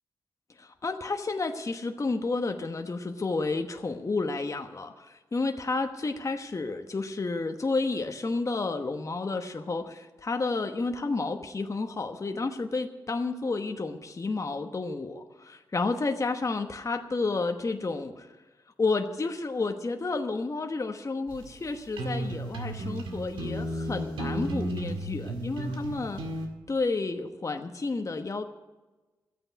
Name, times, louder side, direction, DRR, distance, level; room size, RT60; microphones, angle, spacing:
voice 1, 0.6-18.3 18.8-26.2 26.7-28.4, left 3 dB, 35° left, 6 dB, 1.1 m, -31 dB
sound 1, 21.3-26.5, right 1 dB, 80° right, 1.9 m, -34 dB
12.5 x 8.9 x 9.4 m, 1.2 s
supercardioid pair, 50°, 9 cm